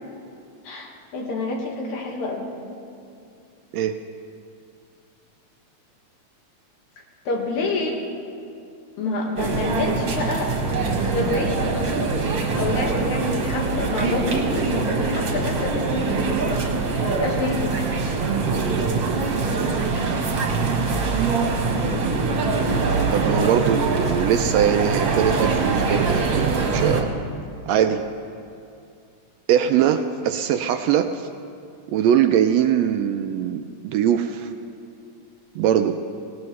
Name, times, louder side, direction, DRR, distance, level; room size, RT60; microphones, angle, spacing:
voice 1, 0.6-2.5 7.3-8.0 9.0-10.5 11.0-12.1 12.6-16.7 17.0-17.9, left 2 dB, 75° left, 0 dB, 3.0 m, -27 dB
sound 1, 9.4-27.0, right 4 dB, 50° right, 1.9 m, -23 dB
voice 2, 23.1-27.1 27.7-28.0 29.5-31.3 31.9-34.5 35.5-36.0, right 9 dB, 80° right, 7 dB, 1.6 m, -21 dB
19.0 x 18.5 x 3.2 m, 2.5 s
omnidirectional pair, 3.3 m